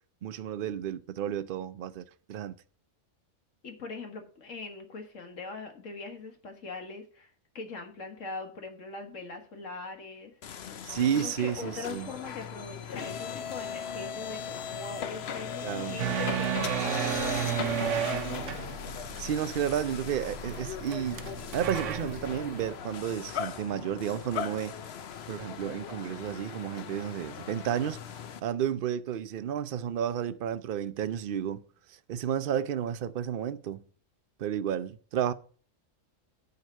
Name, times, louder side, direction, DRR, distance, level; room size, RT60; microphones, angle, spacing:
voice 1, 0.2-2.5 10.8-12.1 15.6-16.0 19.2-21.2 21.5-24.7 25.3-28.0 28.4-33.8 34.4-35.3, right 9 dB, 55° right, 0.7 m, -32 dB
voice 2, 3.6-7.3 7.6-17.9, left 3 dB, 75° left, 1.9 m, -42 dB
sound 1, 10.4-28.4, left 7 dB, 60° left, 0.9 m, -38 dB
sound 2, 16.0-22.7, right 9 dB, 75° right, 1.0 m, -33 dB
9.3 x 5.1 x 6.3 m
omnidirectional pair, 1.3 m